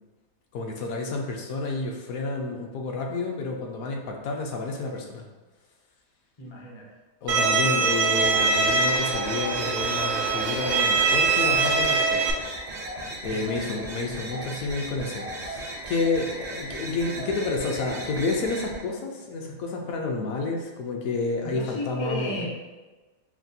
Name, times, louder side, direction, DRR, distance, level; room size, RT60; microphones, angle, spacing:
voice 1, 0.5-5.2 7.2-12.2 13.2-22.5, left 3 dB, 70° left, 1 dB, 0.9 m, -30 dB
voice 2, 6.4-6.9 13.3-13.7 21.4-22.5, left 1 dB, 50° left, -3 dB, 0.3 m, -34 dB
Bowed string instrument, 7.3-12.3, right 4 dB, 70° right, 0.8 m, -23 dB
sound 1, 8.1-18.8, right 1 dB, 50° right, 0.4 m, -36 dB
5.8 x 2.2 x 2.7 m, 1.2 s
omnidirectional pair, 1.7 m